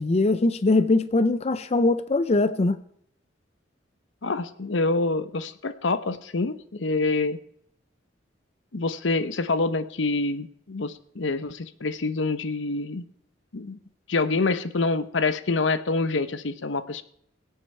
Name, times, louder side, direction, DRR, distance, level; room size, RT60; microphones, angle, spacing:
voice 1, 0.0-2.8, left 2 dB, 35° left, 12 dB, 0.5 m, -21 dB
voice 2, 4.2-7.4 8.7-13.1 13.5-13.8 14.1-17.0, left 3 dB, 75° left, 12 dB, 0.9 m, -26 dB
23.0 x 8.6 x 4.4 m, 0.70 s
head